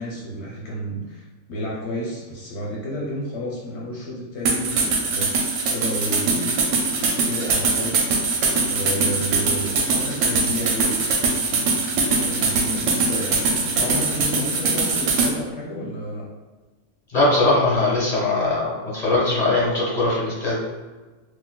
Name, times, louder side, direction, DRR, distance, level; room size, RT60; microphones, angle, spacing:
voice 1, 0.0-6.6 7.2-8.2 8.6-11.1 12.1-16.3, equal, 60° left, -5 dB, 0.9 m, -31 dB
sound 1, 4.4-15.3, right 4 dB, 85° right, 1.1 m, -22 dB
voice 2, 17.1-20.6, left 2 dB, 35° left, -6 dB, 0.8 m, -20 dB
3.9 x 2.3 x 2.2 m, 1.3 s
omnidirectional pair, 1.5 m